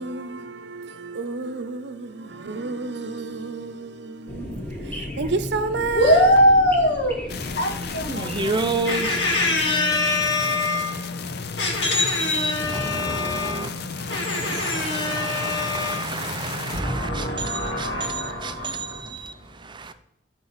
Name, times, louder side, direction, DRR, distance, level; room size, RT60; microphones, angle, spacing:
voice 1, 0.0-6.3, right 4 dB, 70° right, 0.7 m, -30 dB
sound 1, 4.3-9.6, left 1 dB, 10° left, 1.3 m, -36 dB
voice 2, 5.9-11.2 11.6-13.8 14.1-16.2 16.7-19.5, left 1 dB, 90° left, 1.8 m, -23 dB
sound 2, 7.3-16.8, left 4 dB, 60° left, 0.5 m, -33 dB
voice 3, 8.1-9.2 12.7-13.7 14.0-19.9, right 4 dB, 25° right, 0.5 m, -31 dB
10.0 x 4.1 x 5.6 m
head